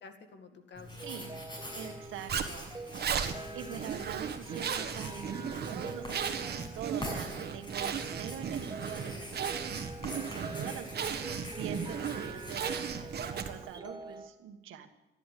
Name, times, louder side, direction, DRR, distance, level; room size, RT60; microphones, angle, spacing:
voice 1, 0.0-1.1 3.3-3.8 14.7-14.9, left 5 dB, 65° left, 8 dB, 2.1 m, -52 dB
sound 1, 0.7-14.3, right 2 dB, 20° right, 1.4 m, -46 dB
Writing, 0.8-13.6, equal, 25° left, 6.6 m, -45 dB
voice 2, 1.0-1.3 1.7-2.7 3.5-5.4 5.7-9.6 10.2-14.9, right 9 dB, 85° right, 5 dB, 1.6 m, -44 dB
Zipper (clothing), 2.3-13.8, right 7 dB, 55° right, 1.5 m, -36 dB
15.0 x 11.0 x 8.4 m, 1.0 s
cardioid pair, 90°, 20 cm